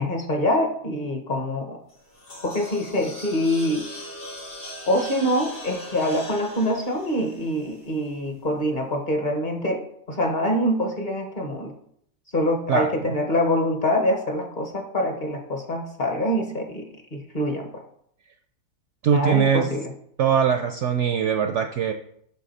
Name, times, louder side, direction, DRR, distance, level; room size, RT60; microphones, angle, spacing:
voice 1, 0.0-1.8 2.4-3.8 4.9-11.7 12.3-16.8 17.1-17.7 19.1-19.9, left 1 dB, 35° left, 3 dB, 0.8 m, -25 dB
sound 1, 1.9-8.2, equal, 80° left, 3.9 m, -40 dB
voice 2, 19.0-19.7 20.2-21.9, right 8 dB, 70° right, 6 dB, 0.7 m, -21 dB
8.2 x 5.9 x 4.1 m, 0.69 s
omnidirectional pair, 1.7 m